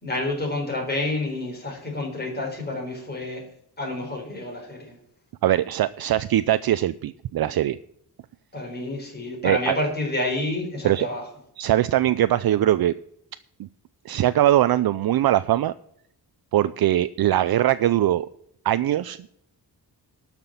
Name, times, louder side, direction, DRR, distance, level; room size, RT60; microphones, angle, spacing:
voice 1, 0.0-3.4 3.8-5.0 8.5-11.2, left 2 dB, 25° left, 1 dB, 4.3 m, -29 dB
voice 2, 5.4-7.8 9.4-9.8 10.8-11.1 11.6-12.9 13.6-13.7 14.1-15.7 16.5-18.3 18.6-19.2, right 12 dB, 65° right, 14 dB, 0.5 m, -21 dB
12.5 x 6.0 x 9.0 m, 0.71 s
wide cardioid pair, 160°, 40 cm